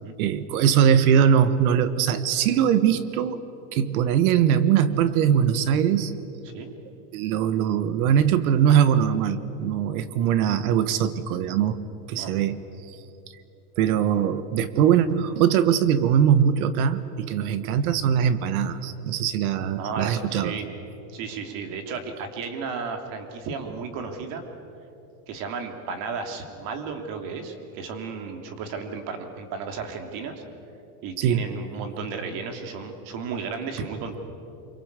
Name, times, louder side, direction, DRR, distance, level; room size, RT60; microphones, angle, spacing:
voice 1, 0.2-3.4 3.7-6.1 7.1-11.8 12.1-12.6 13.8-20.5 31.2-31.4, right 8 dB, 70° right, 13 dB, 1.5 m, -21 dB
voice 2, 19.8-20.7 21.1-24.4 25.3-30.4 31.0-34.2, right 5 dB, 45° right, 6 dB, 3.1 m, -34 dB
26.0 x 24.0 x 8.3 m, 3.0 s
supercardioid pair, 160°, 45 cm